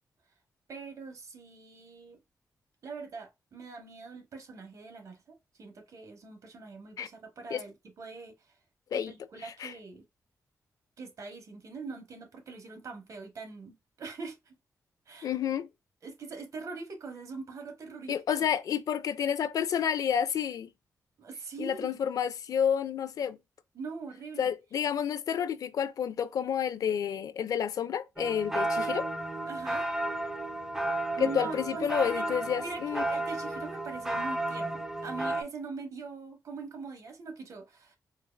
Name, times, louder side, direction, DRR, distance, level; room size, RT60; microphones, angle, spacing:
voice 1, 0.7-2.2 2.8-8.3 8.9-10.0 11.0-14.5 15.1-15.3 16.0-18.5 21.2-22.0 23.7-24.5 29.4-29.9 31.1-32.3 32.6-38.0, right 4 dB, 65° right, 1.1 m, -42 dB
voice 2, 9.4-9.7 15.2-15.7 18.1-20.7 21.6-23.4 24.4-29.1 31.2-33.0, left 8 dB, 75° left, 0.4 m, -30 dB
sound 1, 28.2-35.4, right 1 dB, 5° right, 0.5 m, -33 dB
4.4 x 2.5 x 2.2 m
wide cardioid pair, 105°, 6 cm